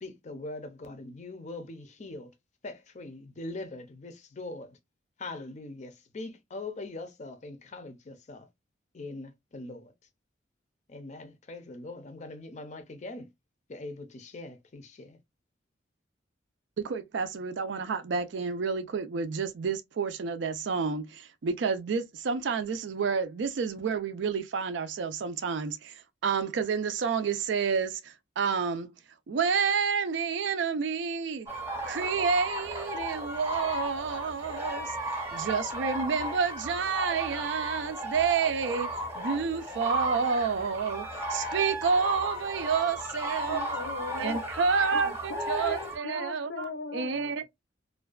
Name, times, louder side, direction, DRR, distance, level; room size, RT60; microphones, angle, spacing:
voice 1, 0.0-2.3 2.6-4.8 5.2-8.5 8.9-9.9 10.9-13.3 13.7-15.2, left 2 dB, 40° left, 0.5 m, -42 dB
voice 2, 16.8-28.9 29.3-31.5 31.8-34.9 35.3-43.6 44.2-47.4, right 5 dB, 70° right, 0.4 m, -29 dB
sound 1, 31.5-46.0, right 1 dB, 15° right, 0.7 m, -35 dB
voice 3, 43.5-44.4 44.9-47.4, left 4 dB, 85° left, 0.7 m, -39 dB
2.5 x 2.2 x 2.2 m
head